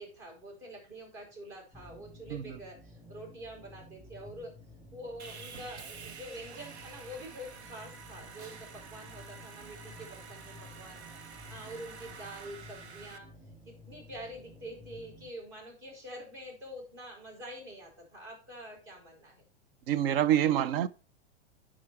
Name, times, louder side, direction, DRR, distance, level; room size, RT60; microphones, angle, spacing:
voice 1, 0.0-4.5 4.9-11.0 11.5-13.3 13.9-19.4, equal, 40° right, 5.0 m, -46 dB
sound 1, 1.7-15.3, left 1 dB, 15° right, 4.7 m, -53 dB
Sawing, 5.2-13.2, right 6 dB, 85° right, 1.1 m, -48 dB
voice 2, 19.9-20.9, right 11 dB, 60° right, 0.7 m, -26 dB
10.5 x 5.0 x 4.8 m
supercardioid pair, 140°, 32 cm